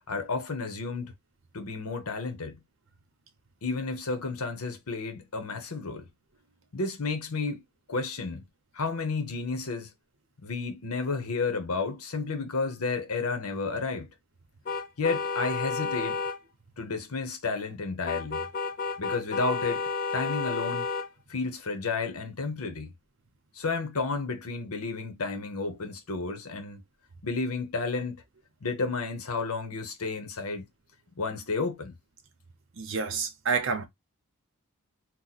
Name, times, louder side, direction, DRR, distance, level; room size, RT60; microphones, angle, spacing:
voice 1, 0.1-1.1 1.5-2.6 3.6-6.1 6.7-7.6 7.9-8.4 8.7-9.9 10.4-14.1 15.0-16.2 16.8-18.5 19.0-20.9 21.3-22.9 23.5-26.8 27.2-28.2 28.6-30.6 31.2-31.9, left 4 dB, 85° left, 0.9 m, -31 dB
sound 1, 14.6-16.4 18.1-21.1, left 4 dB, 40° left, 0.4 m, -31 dB
voice 2, 32.8-33.8, right 5 dB, 60° right, 0.8 m, -29 dB
2.9 x 2.2 x 4.0 m
head